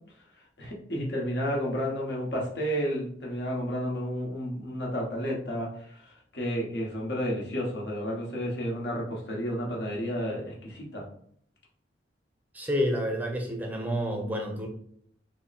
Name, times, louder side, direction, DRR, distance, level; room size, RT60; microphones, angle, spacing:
voice 1, 0.6-5.7 6.3-11.0, equal, 70° left, -2 dB, 1.1 m, -31 dB
voice 2, 12.5-14.7, equal, 10° right, 1 dB, 0.5 m, -29 dB
3.5 x 2.1 x 4.0 m, 0.64 s
head